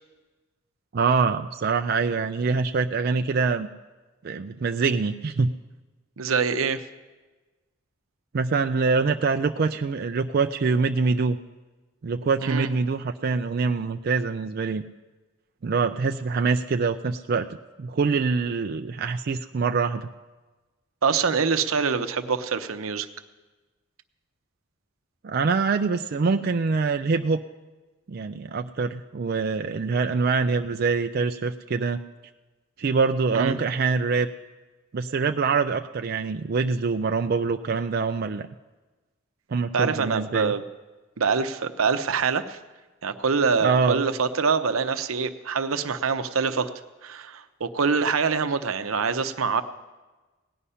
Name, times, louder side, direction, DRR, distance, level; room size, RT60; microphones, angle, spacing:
voice 1, 0.9-3.7 4.2-5.5 8.3-11.4 12.0-14.8 15.6-17.5 17.8-20.1 25.2-27.4 28.1-32.0 32.8-34.3 34.9-38.5 39.5-40.5 43.6-44.0, right 4 dB, 50° right, 6 dB, 0.4 m, -24 dB
voice 2, 6.2-6.8 12.4-12.7 21.0-23.1 33.3-33.6 39.7-40.6 41.2-42.6 43.0-46.7 47.0-49.6, right 5 dB, 85° right, 10 dB, 0.7 m, -25 dB
18.0 x 9.9 x 5.6 m, 1.2 s
head